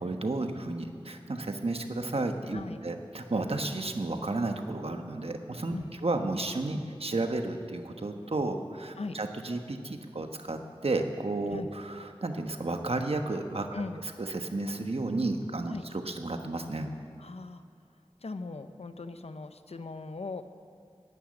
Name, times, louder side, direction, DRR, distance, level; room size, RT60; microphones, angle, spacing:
voice 1, 0.0-5.7 6.0-13.7 14.2-15.8 16.0-16.9, right 2 dB, 70° right, 5 dB, 1.2 m, -32 dB
voice 2, 13.7-14.0 15.7-15.9 17.2-17.6 18.2-20.4, left 3 dB, 80° left, 9 dB, 0.7 m, -39 dB
11.0 x 9.7 x 9.9 m, 2.3 s
wide cardioid pair, 45°, 10 cm